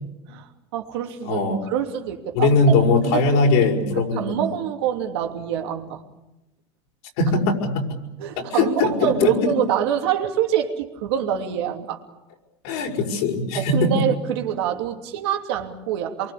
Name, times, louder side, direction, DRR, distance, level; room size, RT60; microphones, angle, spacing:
voice 1, 0.3-1.4 1.7-2.5 3.0-6.0 8.2-12.0 13.5-16.3, right 10 dB, 85° right, 4 dB, 3.0 m, -26 dB
voice 2, 1.2-1.6 2.3-4.4 7.2-8.0 8.5-9.5 12.6-14.1, left 3 dB, 75° left, 2 dB, 6.0 m, -20 dB
25.5 x 23.0 x 8.6 m, 0.92 s
supercardioid pair, 110°, 13 cm